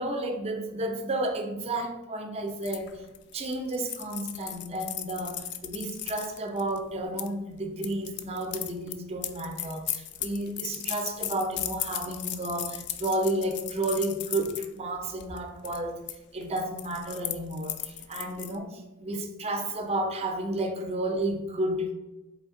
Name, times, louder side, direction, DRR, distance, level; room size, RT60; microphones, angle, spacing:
voice 1, 0.0-3.0 3.3-16.0 16.3-21.9, right 1 dB, 30° right, 5 dB, 0.6 m, -32 dB
sound 1, 2.6-7.3 7.8-14.7 15.1-15.4 15.6-16.2 16.4-18.5, left 11 dB, 50° left, 0.3 m, -36 dB
4.2 x 3.4 x 3.7 m, 1.0 s
head